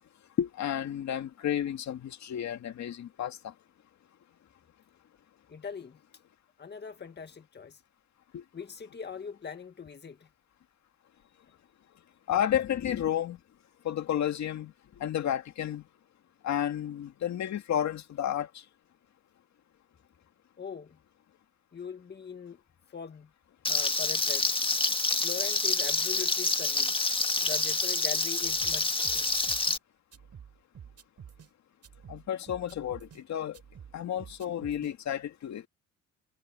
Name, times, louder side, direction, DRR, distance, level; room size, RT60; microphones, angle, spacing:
voice 1, 0.4-3.5 8.3-8.4 12.3-13.4 13.8-14.7 15.0-15.8 16.4-18.5 32.1-33.6 33.9-35.7, left 10 dB, 65° left, 2.3 m, -31 dB
voice 2, 5.5-6.0 6.6-7.8 8.5-10.3 20.6-21.0 21.7-22.6 22.9-23.3 23.7-24.5 25.2-26.9 27.4-29.3, left 6 dB, 35° left, 1.9 m, -41 dB
Frying (food), 23.6-29.8, left 3 dB, 15° left, 1.8 m, -27 dB
sound 1, 28.4-29.8 30.1-31.5 31.8-33.2 33.5-34.9, right 8 dB, 55° right, 7.3 m, -50 dB
cardioid pair, 90°, 30 cm